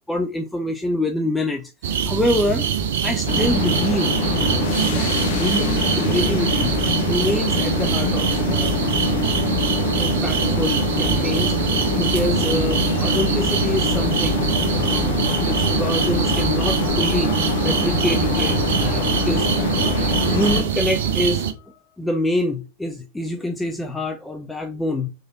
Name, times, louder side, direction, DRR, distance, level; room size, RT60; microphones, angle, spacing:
voice 1, 0.1-1.7 2.0-2.7 3.0-8.9 10.0-11.5 11.9-17.4 17.6-19.6 20.3-25.1, left 1 dB, 5° left, 0.4 m, -26 dB
sound 1, 1.8-21.5, right 8 dB, 60° right, 0.5 m, -23 dB
sound 2, 3.3-20.6, left 4 dB, 50° left, 0.7 m, -24 dB
3.8 x 3.2 x 2.5 m
figure-of-eight pair, 90°, 0 cm